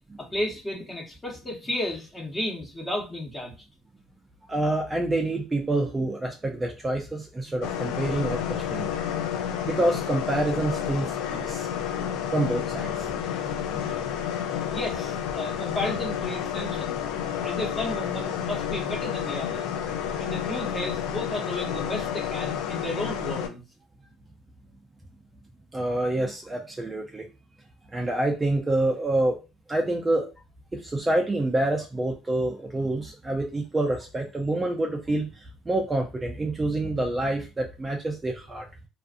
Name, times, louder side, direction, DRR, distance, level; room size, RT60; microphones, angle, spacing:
voice 1, 0.2-3.5 8.1-8.2 13.2-13.4 13.8-14.1 14.7-17.0 17.4-19.7 20.2-23.6, left 1 dB, 15° left, -1 dB, 1.0 m, -33 dB
voice 2, 4.5-9.0 9.6-11.7 12.3-13.1 25.7-27.3 27.9-29.4 29.7-30.3 30.7-38.7, right 2 dB, 15° right, 2 dB, 0.4 m, -27 dB
sound 1, 7.6-23.5, left 9 dB, 85° left, 0.3 m, -30 dB
2.4 x 2.4 x 2.5 m, 0.30 s
cardioid pair, 105°, 0 cm